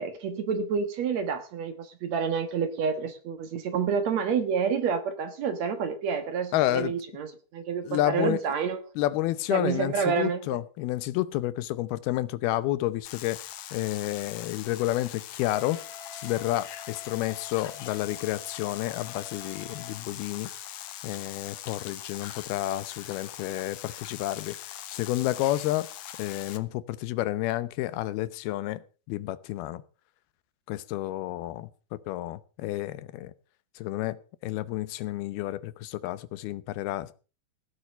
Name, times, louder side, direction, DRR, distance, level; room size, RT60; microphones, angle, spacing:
voice 1, 0.0-8.8 9.5-10.4, right 6 dB, 60° right, 2.2 m, -29 dB
voice 2, 6.5-6.9 7.8-8.4 9.0-13.4 13.7-15.8 16.2-20.5 21.0-24.6 24.9-25.9 26.2-28.8 29.1-29.8 30.7-33.3 33.8-37.2, left 15 dB, 90° left, 2.8 m, -30 dB
sound 1, 13.1-26.6, left 12 dB, 65° left, 2.2 m, -42 dB
Wind instrument woodwind instrument, 15.4-20.0, left 7 dB, 40° left, 2.3 m, -47 dB
17.0 x 8.1 x 6.6 m
omnidirectional pair, 4.3 m